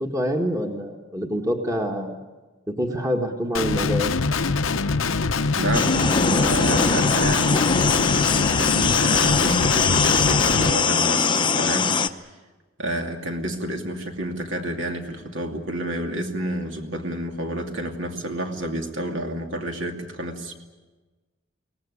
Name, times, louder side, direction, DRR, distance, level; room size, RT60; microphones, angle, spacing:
voice 1, 0.0-2.2 2.7-4.1, equal, 15° right, 4 dB, 1.7 m, -26 dB
Guitar, 3.5-10.7, left 4 dB, 85° left, 0.8 m, -24 dB
voice 2, 5.5-12.2 12.8-20.5, right 1 dB, 70° right, 4 dB, 2.6 m, -29 dB
sound 1, 5.7-12.1, left 5 dB, 25° left, 0.7 m, -21 dB
23.5 x 18.5 x 9.8 m, 1.2 s
head